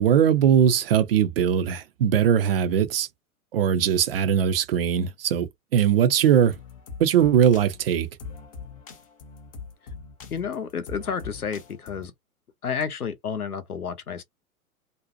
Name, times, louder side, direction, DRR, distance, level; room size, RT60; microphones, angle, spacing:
voice 1, 0.0-3.1 3.5-6.6 7.0-8.1, right 9 dB, 45° right, 0.4 m, -20 dB
sound 1, 6.3-12.1, left 5 dB, 25° left, 0.4 m, -42 dB
voice 2, 10.3-12.1 12.6-14.2, left 6 dB, 85° left, 0.7 m, -30 dB
2.5 x 2.1 x 2.5 m
figure-of-eight pair, 105°, 44 cm